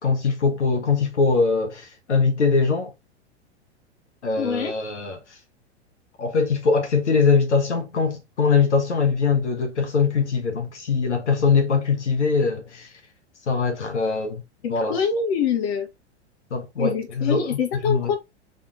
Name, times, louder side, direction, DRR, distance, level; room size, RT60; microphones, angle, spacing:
voice 1, 0.0-2.9 4.2-5.2 6.2-12.9 13.5-14.4 14.7-15.0 16.5-17.6 17.8-18.1, left 5 dB, 80° left, 1.4 m, -22 dB
voice 2, 4.4-4.7 14.6-15.9 16.8-18.2, left 6 dB, 60° left, 1.5 m, -25 dB
4.1 x 3.6 x 3.1 m
hypercardioid pair, 95°, 34 cm